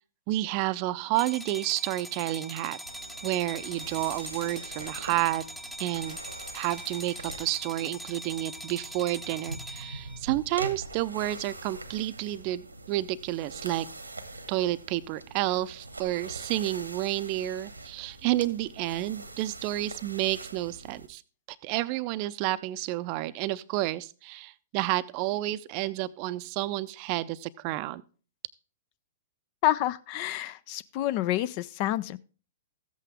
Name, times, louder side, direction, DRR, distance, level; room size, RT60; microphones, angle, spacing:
voice 1, 0.3-2.8 3.2-5.4 5.8-6.2 6.5-13.9 14.5-21.2 21.6-28.0, right 16 dB, 40° right, 16 dB, 0.5 m, -30 dB
sound 1, 1.2-10.2, equal, ahead, 0.8 m, -42 dB
sound 2, 2.8-21.1, right 2 dB, 90° right, 1.2 m, -44 dB
voice 2, 29.6-32.2, left 14 dB, 40° left, 17 dB, 0.5 m, -28 dB
14.0 x 8.3 x 3.5 m, 0.37 s
figure-of-eight pair, 110°, 0 cm